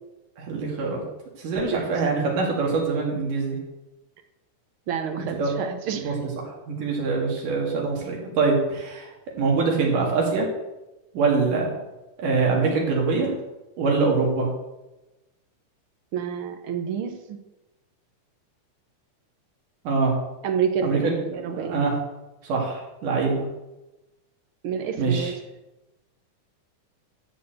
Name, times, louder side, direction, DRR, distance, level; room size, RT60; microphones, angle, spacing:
voice 1, 0.4-1.0 1.4-3.6 5.3-6.3 6.7-9.1 9.4-10.5 11.1-11.7 12.2-13.3 13.8-14.5 19.9-20.1 20.8-21.2 21.5-21.9 22.4-23.4 25.0-25.3, right 4 dB, 90° right, -1 dB, 4.1 m, -24 dB
voice 2, 4.9-6.2 16.1-17.4 20.4-21.8 24.6-25.3, right 7 dB, 60° right, 5 dB, 1.4 m, -29 dB
13.5 x 4.7 x 8.0 m, 1.0 s
omnidirectional pair, 3.6 m